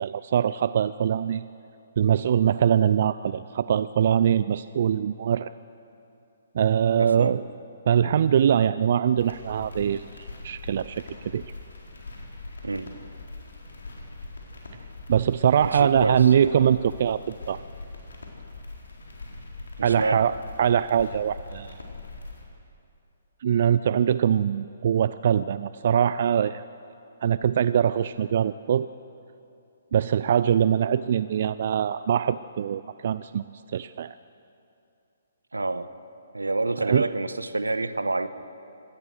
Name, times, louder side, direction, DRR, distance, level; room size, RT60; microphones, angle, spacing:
voice 1, 0.0-1.4 2.0-5.5 6.5-7.4 7.9-11.0 11.3-11.4 15.1-17.6 19.8-20.3 20.6-21.8 23.4-26.6 27.2-28.9 29.9-33.4 33.7-34.2 36.8-37.0, right 9 dB, 50° right, 15 dB, 0.4 m, -23 dB
voice 2, 7.0-7.4 12.6-12.9 15.6-16.2 19.8-20.3 35.5-35.9 36.3-38.3, right 2 dB, 85° right, 13 dB, 1.1 m, -28 dB
sound 1, 9.2-22.4, left 2 dB, 70° left, 4.2 m, -42 dB
24.5 x 18.0 x 6.5 m, 2.7 s
figure-of-eight pair, 130°, 0 cm